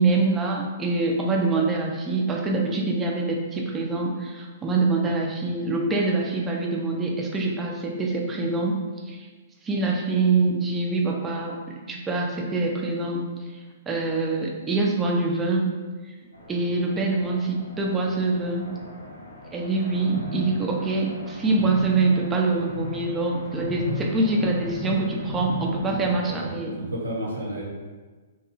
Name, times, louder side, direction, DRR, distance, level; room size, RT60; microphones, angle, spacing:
voice 1, 0.0-8.8 9.1-9.3 9.6-13.2 13.9-15.7 16.5-18.7 19.5-26.8, right 3 dB, 15° right, -1 dB, 0.4 m, -25 dB
sound 1, 16.3-26.2, left 1 dB, 85° left, 0.7 m, -36 dB
voice 2, 26.8-27.6, equal, 80° right, -3 dB, 0.8 m, -31 dB
2.7 x 2.3 x 2.4 m, 1.4 s
figure-of-eight pair, 115°, 0 cm